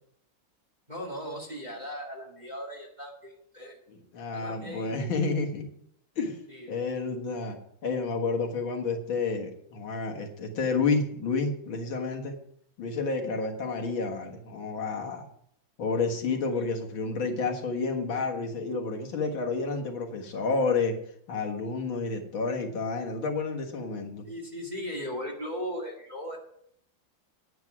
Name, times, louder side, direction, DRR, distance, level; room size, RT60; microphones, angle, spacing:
voice 1, 0.9-3.8 4.3-4.9 6.5-6.8 16.2-16.7 24.3-26.4, equal, 20° right, -1 dB, 2.1 m, -38 dB
voice 2, 4.1-5.6 6.2-6.4 6.7-7.6 7.8-12.4 12.8-15.3 15.8-21.0 21.3-24.3, left 4 dB, 70° left, 2 dB, 2.3 m, -30 dB
9.4 x 9.4 x 6.0 m, 0.69 s
omnidirectional pair, 2.3 m